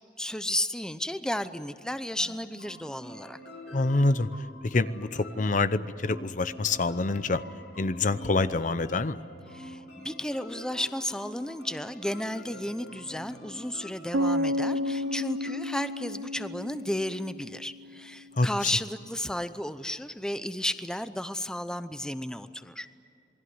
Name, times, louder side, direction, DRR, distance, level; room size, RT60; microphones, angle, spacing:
voice 1, 0.2-3.4 9.5-22.9, left 1 dB, 5° left, 11 dB, 0.7 m, -33 dB
sound 1, 2.2-15.9, equal, 80° left, 5.0 m, -46 dB
voice 2, 3.7-4.3 4.6-7.4 7.8-9.2 18.4-18.7, left 3 dB, 45° left, 14 dB, 0.7 m, -26 dB
sound 2, 14.1-18.0, left 1 dB, 85° right, 0.7 m, -31 dB
27.5 x 21.0 x 9.6 m, 2.6 s
head